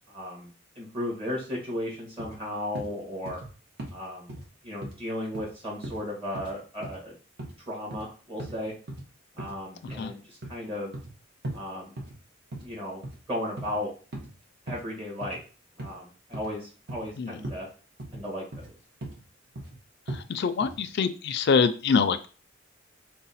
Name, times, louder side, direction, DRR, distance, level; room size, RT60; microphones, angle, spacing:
voice 1, 0.1-0.5 0.8-3.4 3.9-4.3 4.6-7.1 7.7-8.7 9.3-10.9 11.5-11.9 12.6-13.0 13.3-13.9 14.7-15.4 15.8-17.7 18.1-18.7, left 1 dB, 30° right, -4 dB, 1.3 m, -35 dB
sound 1, 2.2-2.4 2.7-2.9 3.3-3.5 3.8-4.0 4.3-4.4 4.8-5.0 5.3-5.5 5.8-6.0 6.3-6.5 6.8-7.0 7.4-7.5 7.9-8.1 8.4-8.6 8.9-9.0 9.4-9.6 9.9-10.0 10.4-11.1 11.4-11.6 12.0-12.2 12.5-12.7 13.0-13.2 13.6-13.8 14.1-14.3 14.7-14.8 15.2-15.4 15.8-15.9 16.3-16.5 16.9-17.1 17.4-17.6 18.0-18.2 18.5-18.7 19.0-19.2 19.5-19.8 20.1-20.2 20.6-20.8, right 1 dB, 60° right, 1.0 m, -38 dB
voice 2, 20.1-22.3, left 5 dB, 60° left, 11 dB, 0.4 m, -25 dB
4.0 x 2.1 x 4.0 m, 0.37 s
head